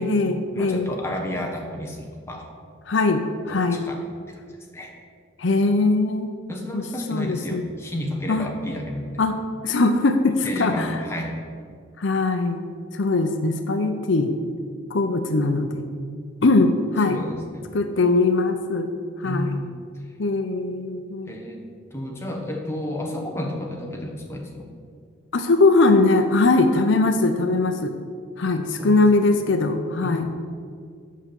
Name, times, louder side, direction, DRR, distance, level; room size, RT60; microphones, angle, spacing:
voice 1, 0.0-0.9 2.9-3.8 5.4-6.3 6.7-6.8 7.1-7.6 8.3-8.5 9.2-9.4 9.6-11.0 12.0-12.6 12.9-14.4 14.9-15.8 16.4-17.2 17.7-18.9 19.2-19.6 20.2-21.3 25.3-27.9 28.4-30.3, left 3 dB, 70° left, 7 dB, 0.7 m, -21 dB
voice 2, 0.5-2.4 3.5-4.0 4.3-4.4 4.7-4.9 6.5-9.1 10.4-11.3 17.1-17.6 19.2-19.7 21.3-21.6 21.9-24.7 28.4-28.5 28.8-29.0 30.0-30.3, left 1 dB, 15° left, 0 dB, 1.1 m, -31 dB
8.4 x 6.0 x 7.0 m, 2.2 s
head